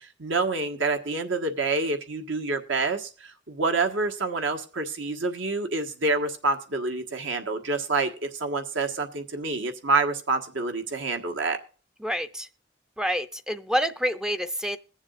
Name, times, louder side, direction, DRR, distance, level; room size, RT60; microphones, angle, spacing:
voice 1, 0.0-11.6, right 3 dB, 80° right, 5 dB, 1.4 m, -27 dB
voice 2, 12.0-12.5 13.0-14.8, equal, 5° right, 9 dB, 0.4 m, -27 dB
21.5 x 7.3 x 2.5 m, 0.39 s
head